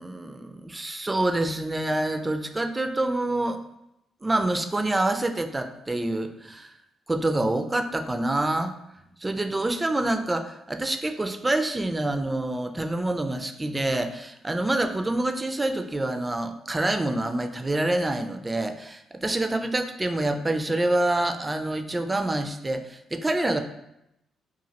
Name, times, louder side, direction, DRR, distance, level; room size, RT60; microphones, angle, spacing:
voice 1, 0.0-3.6 4.2-6.7 7.1-8.7 9.2-23.6, right 2 dB, 20° right, 8 dB, 0.3 m, -26 dB
2.9 x 2.3 x 2.8 m, 0.83 s
supercardioid pair, 55°, 0 cm